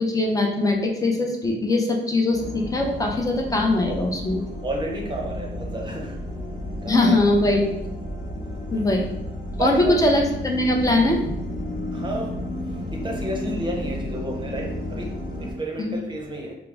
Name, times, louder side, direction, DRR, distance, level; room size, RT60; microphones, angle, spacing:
voice 1, 0.0-4.4 6.9-7.9 8.7-9.2 9.6-11.4 15.8-15.9, left 2 dB, 15° left, 1 dB, 0.6 m, -21 dB
sound 1, 2.3-15.5, left 1 dB, 40° left, 1.0 m, -32 dB
voice 2, 4.6-6.2 6.8-7.1 8.2-8.4 9.5-10.0 11.9-16.5, right 1 dB, 25° right, 0 dB, 0.7 m, -32 dB
4.5 x 2.0 x 3.4 m, 0.84 s
wide cardioid pair, 130°, 20 cm